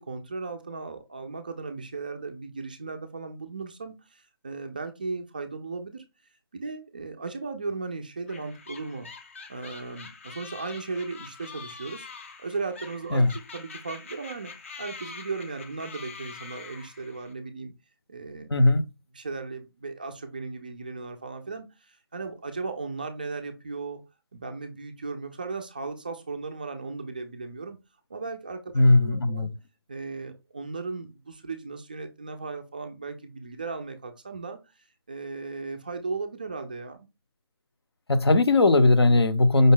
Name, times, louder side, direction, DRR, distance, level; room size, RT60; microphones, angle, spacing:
voice 1, 0.0-6.0 6.5-9.1 9.5-14.5 14.8-17.7 18.1-18.5 19.1-24.0 24.3-27.8 28.1-29.5 29.9-34.6 35.1-37.1, right 4 dB, 20° right, 0.3 m, -36 dB
sound 1, 8.3-17.3, left 4 dB, 30° left, 0.5 m, -44 dB
voice 2, 18.5-18.9 28.7-29.5 38.1-39.7, left 2 dB, 75° left, 0.7 m, -19 dB
5.2 x 2.0 x 3.7 m
figure-of-eight pair, 165°, 13 cm